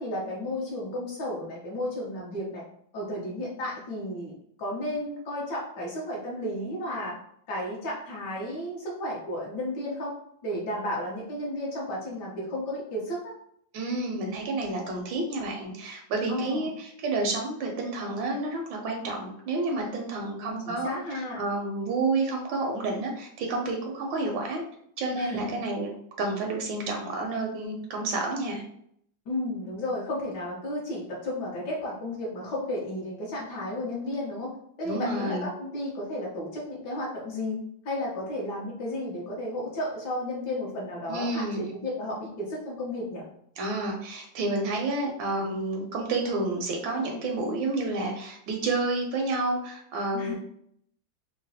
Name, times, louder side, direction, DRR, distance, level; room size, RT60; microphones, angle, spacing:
voice 1, 0.0-2.6 2.9-4.3 4.6-7.2 7.5-10.1 10.4-13.3 16.3-16.7 20.3-21.4 25.1-25.6 29.3-34.5 34.8-37.6 37.8-43.3 50.1-50.3, left 1 dB, 65° left, -4 dB, 1.4 m, -33 dB
voice 2, 13.7-24.6 25.0-25.9 26.2-28.6 34.8-35.5 41.1-41.7 43.6-50.3, right 2 dB, 80° right, 2 dB, 1.3 m, -30 dB
3.8 x 2.2 x 2.7 m, 0.68 s
omnidirectional pair, 2.1 m